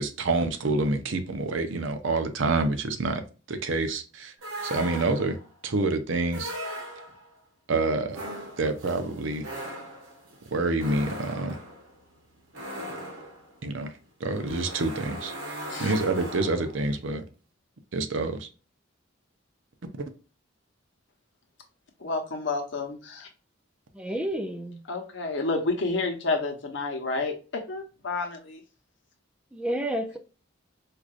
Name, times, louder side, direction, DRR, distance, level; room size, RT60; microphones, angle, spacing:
voice 1, 0.0-3.2 3.5-4.3 4.6-5.4 5.6-6.5 7.7-8.2 8.6-9.5 10.5-11.6 13.6-13.9 14.2-15.3 15.8-17.2 17.9-18.5, right 3 dB, 70° right, 0.6 m, -27 dB
sound 1, 4.4-5.5 6.3-7.3 8.1-16.8, equal, 85° right, 1.1 m, -39 dB
voice 2, 22.0-23.3 24.9-28.6, left 3 dB, 65° left, 0.9 m, -30 dB
voice 3, 23.9-24.8 29.5-30.2, right 1 dB, 5° right, 0.3 m, -30 dB
4.7 x 2.5 x 2.4 m
head